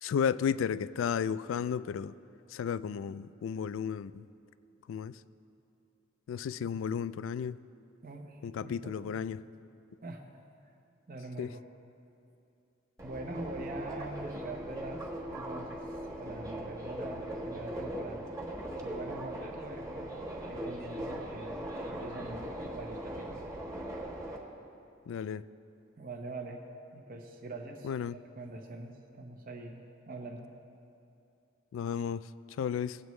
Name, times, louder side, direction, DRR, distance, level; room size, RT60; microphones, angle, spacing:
voice 1, 0.0-2.1 2.5-4.3 4.9-5.2 6.3-7.6 8.4-9.4 11.4-11.5 25.1-25.4 27.8-28.2 31.7-32.3 32.6-33.0, left 7 dB, 75° left, 16 dB, 0.3 m, -33 dB
voice 2, 8.0-9.1 10.0-10.2 11.1-11.6 13.0-15.9 16.2-18.3 18.8-23.4 26.0-26.6 26.9-27.9 28.4-30.5, right 2 dB, 45° right, 2 dB, 0.8 m, -44 dB
Subway metro underground, 13.0-24.4, right 1 dB, 15° right, 1.3 m, -39 dB
19.5 x 8.2 x 3.2 m, 2.6 s
head